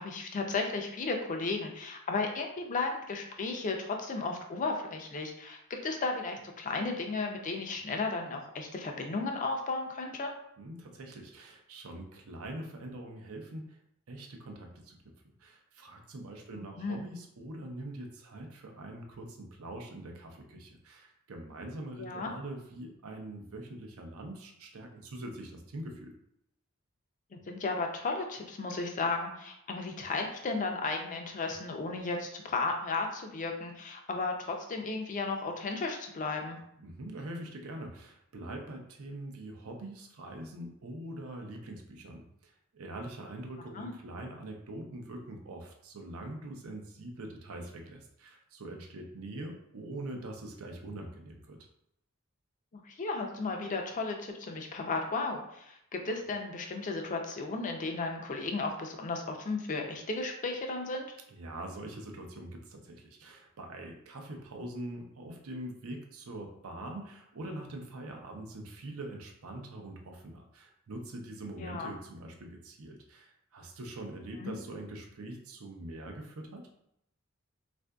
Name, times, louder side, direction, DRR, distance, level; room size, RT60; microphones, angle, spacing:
voice 1, 0.0-10.3 16.5-17.0 22.0-22.3 27.3-36.6 43.7-43.9 52.7-61.1 71.6-71.9 74.4-74.5, left 3 dB, 35° left, 2 dB, 0.4 m, -34 dB
voice 2, 10.6-13.8 14.1-15.0 15.4-26.1 36.8-51.6 61.3-76.6, right 1 dB, 75° right, 2 dB, 0.6 m, -43 dB
3.5 x 2.5 x 2.2 m, 0.76 s
head